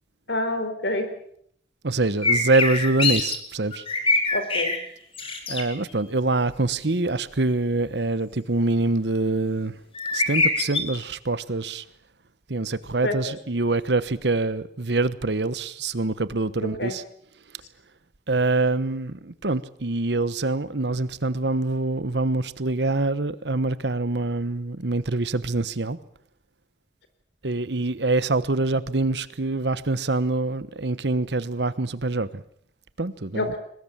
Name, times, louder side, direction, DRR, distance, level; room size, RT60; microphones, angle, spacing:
voice 1, 0.3-1.1 4.3-4.7 13.0-13.2 16.6-16.9 33.3-33.6, left 1 dB, 75° left, 4.2 m, -27 dB
voice 2, 1.8-3.8 5.5-9.8 10.1-11.8 12.5-17.0 18.3-26.0 27.4-32.4 33.0-33.5, right 2 dB, 75° right, 1.1 m, -25 dB
sound 1, 2.2-3.4 3.7-4.8 5.1-5.6 9.9-10.8, left 3 dB, 35° left, 3.4 m, -23 dB
22.5 x 20.5 x 7.5 m
head